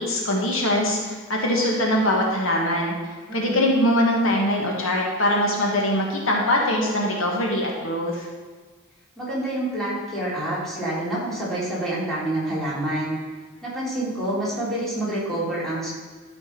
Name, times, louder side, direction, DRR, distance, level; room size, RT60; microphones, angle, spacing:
voice 1, 0.0-2.9 3.3-8.3, left 1 dB, 65° left, -1 dB, 1.5 m, -22 dB
voice 2, 3.3-3.7 9.2-13.2 13.6-15.9, right 1 dB, ahead, -9 dB, 3.3 m, -27 dB
12.5 x 5.2 x 5.3 m, 1.4 s
head